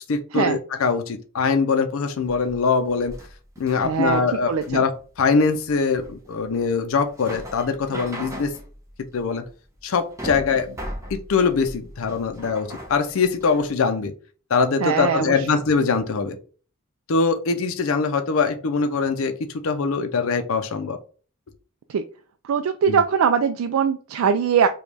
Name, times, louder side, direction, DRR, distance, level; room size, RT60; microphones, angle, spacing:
voice 1, 0.1-3.1 3.6-4.9 5.2-8.5 9.1-9.4 9.8-10.8 11.1-14.1 14.5-16.4 17.1-21.0 22.9-23.0, left 5 dB, 75° left, 7 dB, 0.5 m, -22 dB
sound 1, 2.2-13.7, equal, 15° right, 0.9 m, -39 dB
voice 2, 3.8-4.2 4.5-4.8 14.8-15.5 21.9-22.0 22.4-24.7, right 7 dB, 80° right, 7 dB, 0.3 m, -21 dB
5.0 x 2.3 x 3.3 m, 0.39 s
head